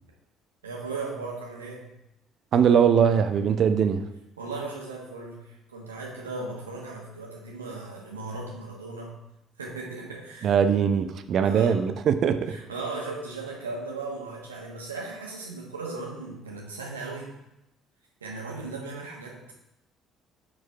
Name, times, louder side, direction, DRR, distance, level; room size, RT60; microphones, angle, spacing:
voice 1, 0.6-1.8 4.4-9.2 9.6-10.5 11.4-11.8 12.5-17.3 18.2-19.5, right 3 dB, 85° right, -2 dB, 1.2 m, -37 dB
voice 2, 2.5-4.0 10.4-12.6, right 7 dB, 50° right, 10 dB, 0.5 m, -21 dB
4.8 x 4.7 x 4.5 m, 0.88 s
figure-of-eight pair, 50°, 0 cm